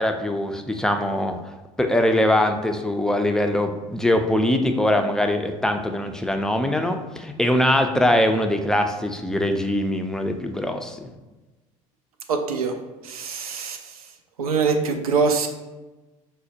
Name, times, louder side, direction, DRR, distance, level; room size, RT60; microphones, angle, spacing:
voice 1, 0.0-1.4 1.8-11.0, left 1 dB, 5° left, 5 dB, 0.4 m, -22 dB
voice 2, 12.3-12.8 13.0-13.8 14.4-15.5, right 5 dB, 85° right, 5 dB, 0.4 m, -23 dB
5.3 x 2.1 x 2.7 m, 1.1 s
hypercardioid pair, 65°, 18 cm